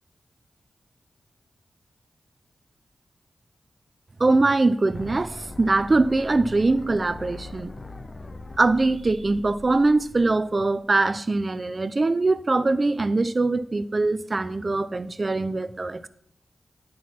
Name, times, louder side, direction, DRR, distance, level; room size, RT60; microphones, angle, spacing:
voice 1, 4.2-7.8 8.6-16.1, right 3 dB, 45° right, 0.6 m, -22 dB
sound 1, 4.9-10.9, left 2 dB, 40° left, 0.7 m, -42 dB
9.3 x 6.2 x 5.8 m
cardioid pair, 45°, 0 cm